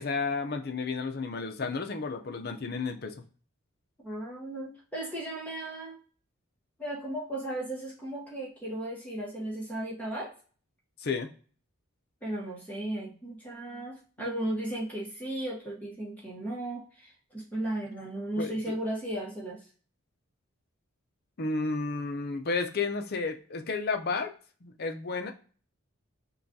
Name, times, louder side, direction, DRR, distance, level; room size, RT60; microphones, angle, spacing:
voice 1, 0.0-3.2 11.0-11.3 18.4-18.8 21.4-24.3 24.6-25.3, left 4 dB, 45° left, 5 dB, 0.6 m, -32 dB
voice 2, 4.0-6.0 6.8-10.3 12.2-19.6, right 1 dB, 5° left, -4 dB, 1.1 m, -35 dB
5.5 x 2.3 x 2.7 m, 0.40 s
head